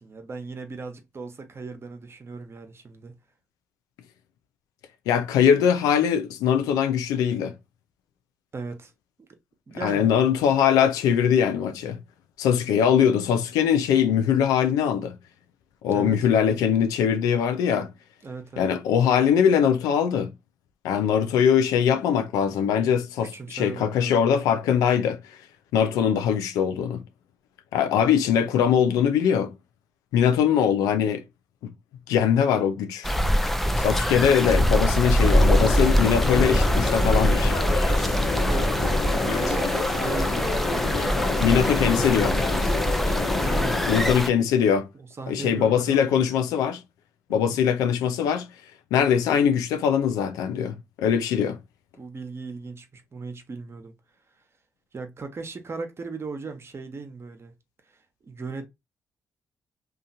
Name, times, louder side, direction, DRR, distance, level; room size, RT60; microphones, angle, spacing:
voice 1, 0.0-3.2 8.5-8.9 9.2-9.3 9.7-10.1 15.9-16.2 18.2-18.7 23.2-24.3 38.5-42.0 43.4-43.9 44.9-46.2 47.3-47.6 51.9-53.9 54.9-57.5 57.9-58.7, right 4 dB, 45° right, 0.9 m, -37 dB
voice 2, 5.1-7.5 9.8-12.0 12.4-15.2 15.8-17.9 18.6-20.3 20.8-25.2 25.7-27.0 27.7-29.5 30.1-31.2 32.1-33.1 33.8-37.5 39.3-39.4 41.4-42.4 43.9-44.9 45.3-46.8 47.3-48.5 48.9-51.6, left 8 dB, 85° left, 0.4 m, -22 dB
sound 1, 33.0-44.3, equal, 5° left, 0.4 m, -23 dB
sound 2, 35.2-44.1, left 4 dB, 65° left, 1.0 m, -29 dB
2.7 x 2.5 x 2.5 m
supercardioid pair, 50°, 6 cm